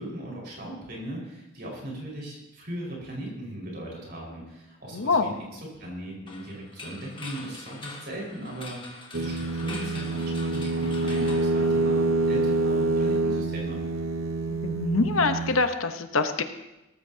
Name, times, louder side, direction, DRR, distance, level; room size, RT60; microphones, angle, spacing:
voice 1, 0.0-13.8, right 1 dB, 45° right, -2 dB, 5.0 m, -38 dB
voice 2, 4.9-5.3 14.6-16.4, left 3 dB, 75° left, 7 dB, 1.0 m, -24 dB
sound 1, 6.3-12.3, left 3 dB, 25° left, 1.4 m, -43 dB
sound 2, 9.1-15.7, right 2 dB, 70° right, 0.7 m, -26 dB
18.5 x 13.5 x 2.8 m, 0.97 s
head